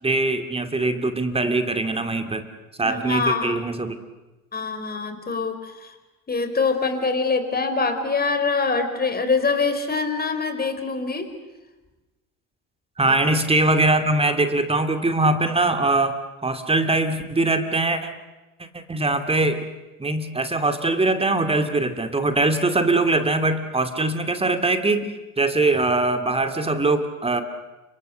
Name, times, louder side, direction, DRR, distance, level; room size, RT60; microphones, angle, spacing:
voice 1, 0.0-2.5 2.8-4.0 13.0-18.1 18.7-19.6 20.0-27.4, right 2 dB, 15° right, 8 dB, 2.4 m, -22 dB
voice 2, 2.8-3.6 4.5-6.0 6.3-11.3 13.1-13.2, left 4 dB, 20° left, 8 dB, 4.3 m, -24 dB
30.0 x 26.0 x 6.8 m, 1.1 s
hypercardioid pair, 80°, 44 cm